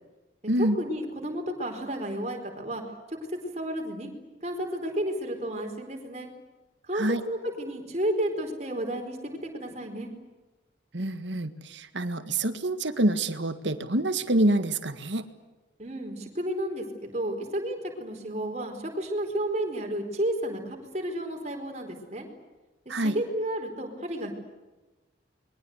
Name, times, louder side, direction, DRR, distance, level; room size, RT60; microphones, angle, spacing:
voice 1, 0.6-2.8 3.3-4.1 4.4-6.3 6.9-10.1 15.8-22.3 22.9-24.3, right 1 dB, 35° right, 3 dB, 4.5 m, -32 dB
voice 2, 10.9-15.2 22.9-23.2, right 1 dB, 75° right, 10 dB, 1.8 m, -26 dB
29.0 x 22.5 x 8.1 m, 1.2 s
head